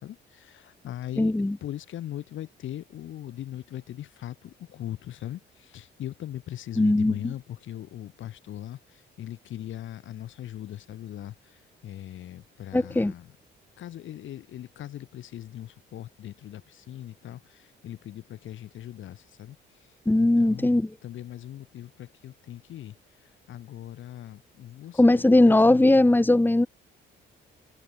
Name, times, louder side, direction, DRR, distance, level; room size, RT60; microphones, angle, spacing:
voice 1, 0.0-13.3 13.8-19.6 20.2-22.9 23.5-25.9, left 12 dB, 75° left, 6.5 m, -40 dB
voice 2, 1.2-1.6 6.8-7.1 12.7-13.1 20.1-20.9 25.0-26.7, left 2 dB, 10° left, 1.7 m, -19 dB
cardioid pair, 90°, 20 cm